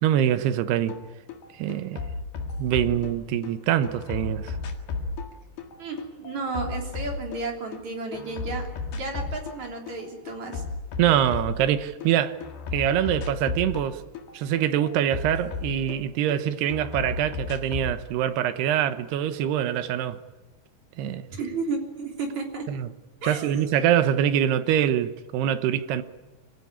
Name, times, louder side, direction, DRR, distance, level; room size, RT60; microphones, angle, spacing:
voice 1, 0.0-1.0 1.6-2.0 2.6-4.6 11.0-12.4 12.7-14.0 14.3-20.2 21.0-21.3 22.7-22.9 23.2-26.0, right 10 dB, 80° right, 3.1 m, -24 dB
sound 1, 0.9-1.0 1.3-3.5 3.8-7.8 8.1-9.6 9.9-12.1 12.4-16.4 16.7-18.0, left 4 dB, 70° left, 3.8 m, -34 dB
voice 2, 5.8-8.7 8.9-10.6 21.3-22.6 23.2-23.7, right 3 dB, 45° right, 4.4 m, -33 dB
25.5 x 16.0 x 9.9 m
omnidirectional pair, 4.8 m